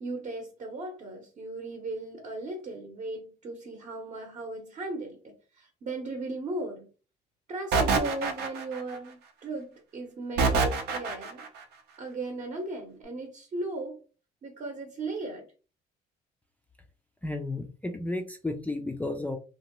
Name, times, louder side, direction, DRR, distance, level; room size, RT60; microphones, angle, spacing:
voice 1, 0.0-6.9 7.5-11.5 12.0-14.0 14.4-15.5, right 2 dB, 45° right, 0.8 m, -37 dB
sound 1, 7.7-9.0 10.4-11.5, right 4 dB, 80° right, 0.6 m, -26 dB
voice 2, 17.2-19.4, left 2 dB, 10° left, 0.3 m, -33 dB
2.7 x 2.2 x 2.9 m
cardioid pair, 110°, 17 cm